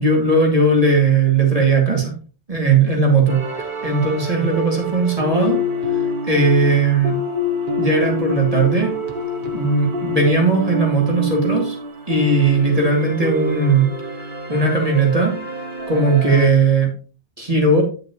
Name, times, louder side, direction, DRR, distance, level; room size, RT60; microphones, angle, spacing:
voice 1, 0.0-2.1 2.5-5.6 5.9-6.0 6.3-7.1 7.8-8.9 9.5-11.8 12.1-13.9 14.5-15.3 15.9-16.9 17.4-17.8, right 3 dB, 35° right, 0 dB, 2.6 m, -17 dB
sound 1, 3.3-16.5, left 1 dB, 55° right, 1.2 m, -26 dB
9.4 x 7.5 x 3.0 m, 0.36 s
omnidirectional pair, 1.1 m